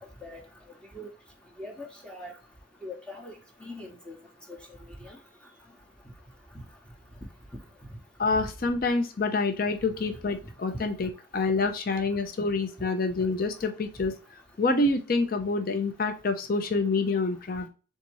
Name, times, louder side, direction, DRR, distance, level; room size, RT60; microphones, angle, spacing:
voice 1, 1.6-2.3 2.8-3.3 3.6-4.1 4.5-4.6 5.0-5.2, left 2 dB, 5° left, 0.8 m, -41 dB
voice 2, 8.2-14.1 14.6-17.7, left 3 dB, 50° left, 0.5 m, -27 dB
4.1 x 3.6 x 3.0 m
head